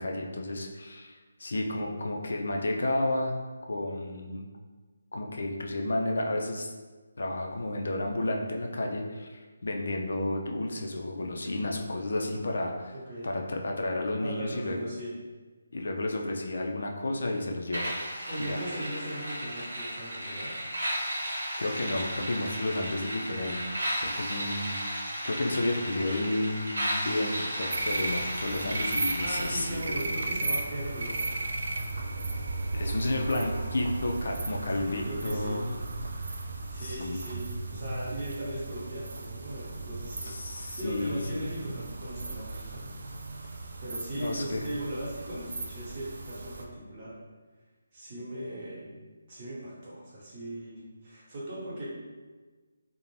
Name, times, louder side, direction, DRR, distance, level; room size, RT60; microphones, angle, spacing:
voice 1, 0.0-3.3 3.7-4.5 5.1-6.7 7.2-12.9 13.2-14.8 15.7-18.0 18.4-18.6 21.6-23.6 24.0-24.8 25.2-27.3 27.6-30.0 32.7-35.6 36.8-37.2 40.2-41.5 44.1-44.7, left 2 dB, 70° left, 1 dB, 0.4 m, -31 dB
voice 2, 12.9-13.3 14.2-15.1 18.2-20.5 29.2-31.3 33.0-33.3 34.8-35.6 36.7-43.0 43.3-47.1 47.9-49.0 49.3-51.9, right 1 dB, 35° right, -7 dB, 1.1 m, -38 dB
sound 1, 17.7-29.7, equal, 85° right, 0.8 m, -34 dB
sound 2, 27.7-46.6, right 2 dB, 65° right, 0.3 m, -35 dB
2.5 x 2.1 x 3.1 m, 1.3 s
figure-of-eight pair, 155°, 0 cm